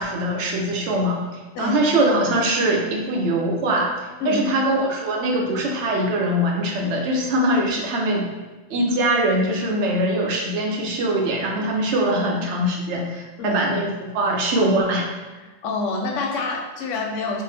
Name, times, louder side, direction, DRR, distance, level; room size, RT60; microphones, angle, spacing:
voice 1, 0.0-8.3 8.7-15.1, right 1 dB, 75° right, -1 dB, 0.9 m, -22 dB
voice 2, 15.4-17.4, left 3 dB, 85° left, 1 dB, 0.9 m, -27 dB
3.6 x 2.0 x 3.3 m, 1.2 s
omnidirectional pair, 1.2 m